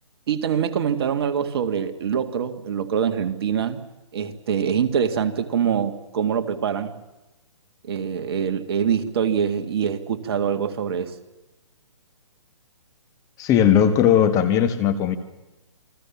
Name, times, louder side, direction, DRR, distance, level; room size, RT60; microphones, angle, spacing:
voice 1, 0.3-3.8 4.1-6.9 7.8-11.2, right 7 dB, 50° right, 8 dB, 2.0 m, -24 dB
voice 2, 13.4-15.2, left 9 dB, 20° left, 8 dB, 1.6 m, -18 dB
28.5 x 20.5 x 7.3 m, 1.0 s
hypercardioid pair, 145°, 17 cm